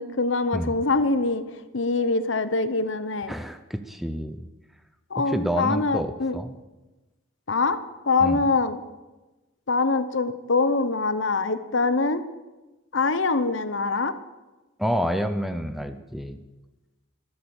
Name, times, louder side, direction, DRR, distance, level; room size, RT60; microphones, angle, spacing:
voice 1, 0.0-1.4 1.7-3.3 5.1-6.4 7.5-7.8 8.1-8.8 9.7-12.2 12.9-14.1, left 3 dB, 65° left, 12 dB, 0.9 m, -24 dB
voice 2, 3.3-4.4 5.3-6.6 8.2-8.4 14.8-16.4, equal, ahead, 9 dB, 0.6 m, -28 dB
13.0 x 12.5 x 7.1 m, 1.1 s
head